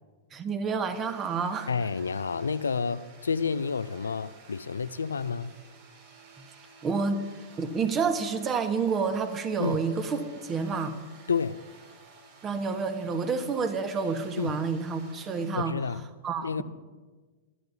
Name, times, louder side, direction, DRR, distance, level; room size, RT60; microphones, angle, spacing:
voice 1, 0.3-1.7 6.8-7.3 7.6-11.0 12.4-15.7 16.2-16.6, right 5 dB, 25° right, 1.3 m, -29 dB
sound 1, 0.9-15.5, right 4 dB, 60° right, 4.5 m, -53 dB
voice 2, 1.7-5.5 9.6-9.8 11.3-11.6 14.4-14.6 15.6-16.1 16.4-16.6, left 5 dB, 80° left, 0.4 m, -30 dB
23.0 x 11.5 x 2.8 m
figure-of-eight pair, 105°, 0 cm